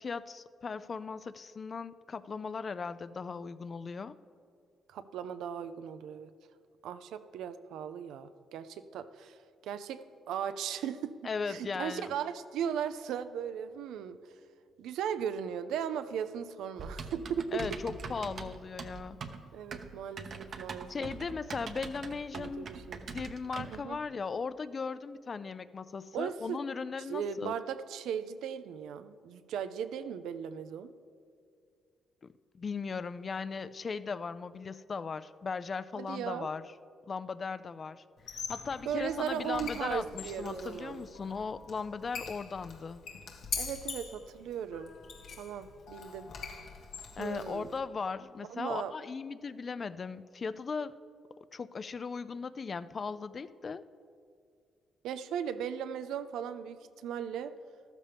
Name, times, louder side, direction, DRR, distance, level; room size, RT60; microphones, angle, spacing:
voice 1, 0.0-4.2 11.2-12.1 17.5-19.2 20.9-22.7 23.1-27.6 32.2-36.7 37.1-38.0 38.3-43.0 47.2-51.0 51.5-53.8, left 5 dB, 40° left, 15 dB, 0.4 m, -38 dB
voice 2, 4.9-6.3 6.8-9.3 9.6-11.2 11.5-14.2 14.8-17.6 19.5-21.1 22.3-23.0 23.7-24.0 26.1-26.6 27.1-30.9 36.0-36.5 38.9-41.0 43.6-44.9 45.4-46.3 47.2-47.7 48.5-48.9 55.0-57.5, right 8 dB, 85° right, 11 dB, 0.5 m, -37 dB
Typing, 16.8-23.8, right 4 dB, 50° right, 0.8 m, -43 dB
Squeak, 38.2-47.8, left 5 dB, 70° left, 1.5 m, -43 dB
13.0 x 12.5 x 3.5 m, 2.4 s
cardioid pair, 90°, 0 cm